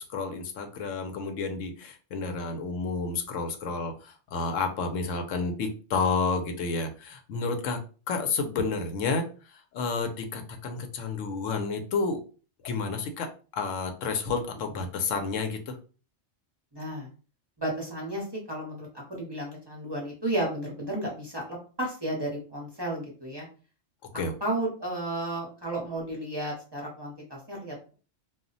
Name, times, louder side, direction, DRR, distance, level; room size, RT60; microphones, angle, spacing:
voice 1, 0.0-7.8 8.1-9.2 9.7-12.2 12.6-13.3 13.6-15.7 24.1-24.3, left 4 dB, 85° left, 5 dB, 1.0 m, -30 dB
voice 2, 16.7-17.1 17.6-23.5 24.1-27.8, right 1 dB, 25° right, -3 dB, 0.8 m, -33 dB
2.4 x 2.1 x 3.8 m, 0.37 s
omnidirectional pair, 1.3 m